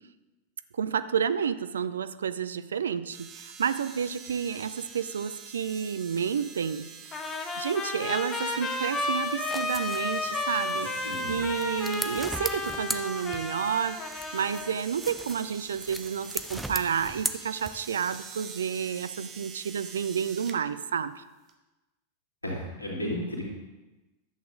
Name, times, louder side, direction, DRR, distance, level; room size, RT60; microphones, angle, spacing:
voice 1, 0.7-6.9 7.6-10.9 11.3-14.1 14.3-21.2, right 7 dB, 70° right, 14 dB, 0.4 m, -30 dB
sound 1, 3.1-20.6 21.5-21.6, right 6 dB, 35° right, 1.1 m, -46 dB
Trumpet, 7.1-14.8, left 3 dB, 25° left, 1.1 m, -33 dB
sound 2, 9.1-13.7 14.1-18.1, right 1 dB, ahead, 0.6 m, -38 dB
voice 2, 11.0-11.5 22.4-23.4, left 1 dB, 85° left, -2 dB, 2.5 m, -33 dB
11.5 x 8.1 x 3.7 m, 1.1 s
figure-of-eight pair, 90°, 0 cm